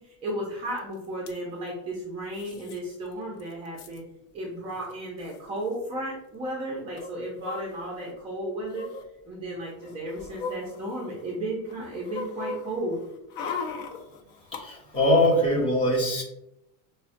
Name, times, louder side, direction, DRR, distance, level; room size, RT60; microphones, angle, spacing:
voice 1, 0.0-4.0 4.3-8.9 9.2-13.0, right 1 dB, 15° right, -3 dB, 0.4 m, -34 dB
sound 1, 0.8-0.9 1.0-1.4 2.3-2.8 3.1-3.2 3.4-4.0 4.8-4.9 5.2-5.4 6.9-8.1 8.7-9.0 9.7-11.3 11.7-14.6 14.9-15.0, left 4 dB, 80° left, 0.7 m, -38 dB
voice 2, 14.5-16.2, left 1 dB, 15° left, -4 dB, 0.9 m, -22 dB
5.3 x 2.1 x 2.5 m, 0.85 s
cardioid pair, 165°, 40 cm